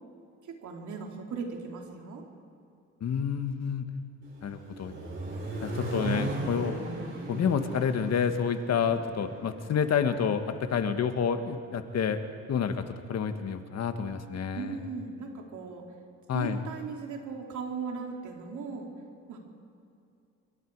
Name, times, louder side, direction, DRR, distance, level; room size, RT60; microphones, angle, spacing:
voice 1, 0.5-2.2 14.5-15.8 16.3-18.9 19.3-19.4, right 5 dB, 75° right, 1 dB, 3.6 m, -38 dB
voice 2, 3.0-3.9 4.4-4.9 5.6-6.7 7.3-12.8 13.1-14.8 16.3-16.6, left 7 dB, 60° left, 8 dB, 1.7 m, -29 dB
Accelerating revving vroom, 4.2-10.2, right 2 dB, 40° right, 6.8 m, -37 dB
26.5 x 23.0 x 4.9 m, 2.5 s
cardioid pair, 90°, 30 cm